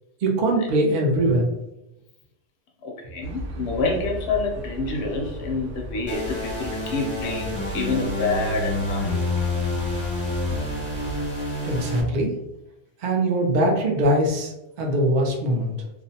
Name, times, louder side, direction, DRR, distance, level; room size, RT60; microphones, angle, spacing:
voice 1, 0.2-1.4 11.6-12.3 13.0-14.5 14.8-15.7, right 1 dB, 55° right, 0 dB, 0.5 m, -21 dB
voice 2, 2.8-9.2, left 3 dB, 70° left, 0 dB, 0.8 m, -27 dB
sound 1, 3.2-11.3, equal, 80° right, 0.9 m, -36 dB
sound 2, 6.1-12.0, left 2 dB, 10° left, 0.6 m, -28 dB
2.4 x 2.0 x 2.7 m, 0.90 s
omnidirectional pair, 1.3 m